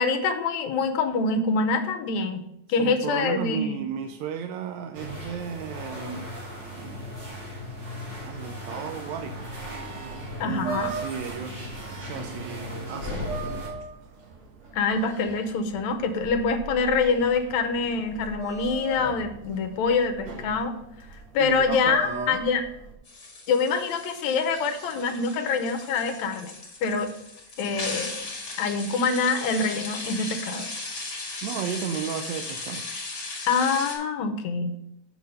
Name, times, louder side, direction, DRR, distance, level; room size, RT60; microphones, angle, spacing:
voice 1, 0.0-3.8 10.4-10.9 14.7-20.8 21.3-22.7 23.5-26.5 26.8-27.1 27.6-28.2 28.6-30.7 33.5-34.8, left 4 dB, 75° left, 6 dB, 2.0 m, -25 dB
voice 2, 2.8-6.3 6.6-7.1 8.2-9.5 10.4-11.8 12.1-13.7 21.4-22.4 31.4-32.8, right 8 dB, 80° right, 5 dB, 1.8 m, -34 dB
sound 1, 4.9-13.7, left 1 dB, 25° right, 2.7 m, -37 dB
sound 2, 9.4-22.9, right 5 dB, 65° right, 2.4 m, -39 dB
sound 3, 23.0-34.0, left 3 dB, 30° left, 2.1 m, -37 dB
7.2 x 6.1 x 5.3 m, 0.76 s
omnidirectional pair, 3.5 m